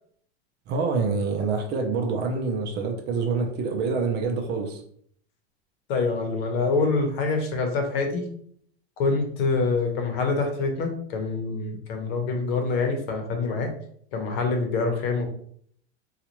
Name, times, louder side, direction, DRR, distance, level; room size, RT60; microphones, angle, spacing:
voice 1, 0.7-4.8, right 4 dB, 30° right, 3 dB, 0.5 m, -26 dB
voice 2, 5.9-8.2 9.0-13.7 14.1-15.3, left 4 dB, 60° left, 3 dB, 1.0 m, -25 dB
3.9 x 2.4 x 3.0 m, 0.62 s
supercardioid pair, 135°, 33 cm